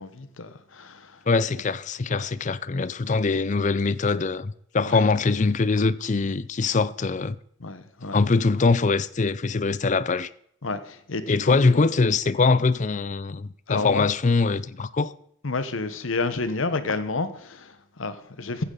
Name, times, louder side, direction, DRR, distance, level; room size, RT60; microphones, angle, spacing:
voice 1, 0.0-1.2 2.1-2.2 4.9-5.0 7.6-8.2 10.6-11.6 13.7-14.1 15.4-18.6, left 3 dB, 75° left, 1.0 m, -30 dB
voice 2, 1.3-7.4 8.1-10.3 11.3-15.1, left 4 dB, 35° left, 0.5 m, -23 dB
14.5 x 9.5 x 3.9 m
head